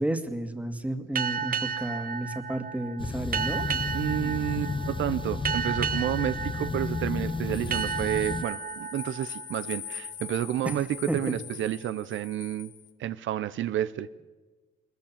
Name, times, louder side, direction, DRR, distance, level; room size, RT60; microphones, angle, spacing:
voice 1, 0.0-3.7 10.6-10.7 11.1-11.4, right 1 dB, 5° right, 7 dB, 2.1 m, -31 dB
sound 1, 1.1-10.4, right 7 dB, 45° right, 0.9 m, -33 dB
sound 2, 3.0-8.4, left 4 dB, 25° left, 0.7 m, -32 dB
voice 2, 3.9-12.7 13.0-14.1, right 12 dB, 75° right, 14 dB, 0.7 m, -30 dB
sound 3, 7.5-12.9, left 10 dB, 65° left, 1.8 m, -42 dB
21.0 x 21.0 x 7.4 m, 1.3 s
cardioid pair, 90°, 20 cm